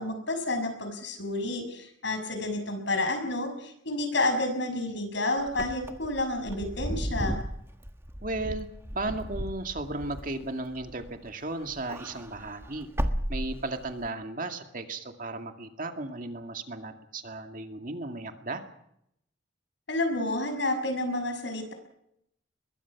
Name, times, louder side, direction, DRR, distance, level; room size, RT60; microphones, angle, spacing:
voice 1, 0.0-7.4 19.9-21.7, left 2 dB, 65° left, 6 dB, 6.2 m, -30 dB
Wind / Car, 5.5-11.3 11.6-14.1, equal, 15° right, 1.4 m, -35 dB
voice 2, 8.2-8.7 8.9-12.9 13.3-18.6, right 2 dB, 45° right, 5 dB, 2.3 m, -35 dB
24.0 x 22.0 x 6.1 m, 0.74 s
head